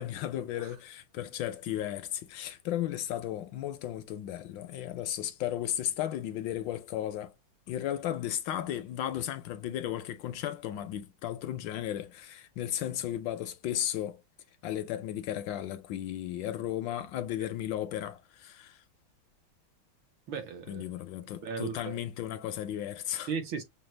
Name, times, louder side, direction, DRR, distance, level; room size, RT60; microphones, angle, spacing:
voice 1, 0.0-7.3 7.7-14.2 14.6-18.8 20.7-23.3, left 11 dB, 75° left, 1.1 m, -35 dB
voice 2, 20.3-20.8 21.4-22.0 23.3-23.6, right 6 dB, 65° right, 1.7 m, -36 dB
6.0 x 2.3 x 3.2 m
omnidirectional pair, 2.4 m